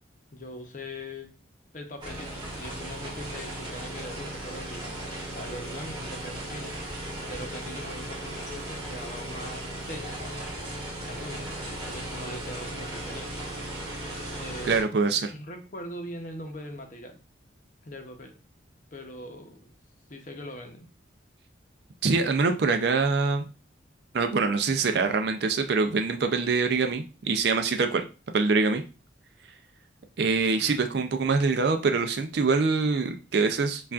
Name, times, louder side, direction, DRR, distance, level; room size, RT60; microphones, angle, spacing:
voice 1, 0.3-1.3 1.7-5.0 5.3-6.8 7.3-10.4 11.0-13.3 14.4-14.8 15.3-17.2 17.8-18.4 18.9-19.8 20.1-20.9, left 1 dB, 40° left, 4 dB, 0.7 m, -41 dB
Motorized Tiller, 2.0-14.8, right 1 dB, 25° right, 1.6 m, -36 dB
voice 2, 14.6-15.3 22.0-23.5 24.1-28.0 28.3-28.8 30.2-33.9, right 4 dB, 55° right, 7 dB, 0.4 m, -24 dB
6.9 x 2.4 x 2.4 m, 0.33 s
head